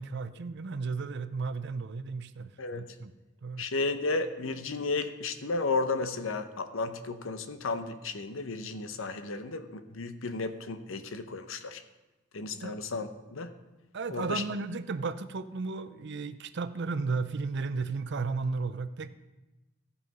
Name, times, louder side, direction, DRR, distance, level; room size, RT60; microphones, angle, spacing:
voice 1, 0.0-3.1 3.4-3.7 12.5-12.8 13.9-19.1, right 4 dB, 55° right, 12 dB, 0.5 m, -34 dB
voice 2, 3.6-11.8 12.3-13.5 14.1-14.4, left 3 dB, 65° left, 10 dB, 0.8 m, -33 dB
14.0 x 5.6 x 5.4 m, 1.1 s
head